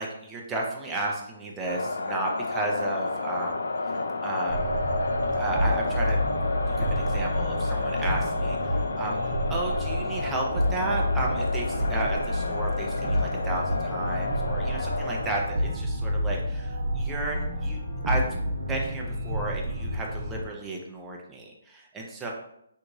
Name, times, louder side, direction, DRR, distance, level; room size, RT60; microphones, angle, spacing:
voice 1, 0.0-3.7 4.2-4.8 5.2-6.2 6.7-17.8 18.1-18.2 18.7-22.3, right 2 dB, 5° right, -2 dB, 0.3 m, -33 dB
sound 1, 1.7-15.3, left 3 dB, 80° left, 0.3 m, -31 dB
sound 2, 4.5-20.4, equal, 80° right, 0.8 m, -29 dB
3.5 x 2.8 x 2.6 m, 0.76 s
hypercardioid pair, 170°, 0 cm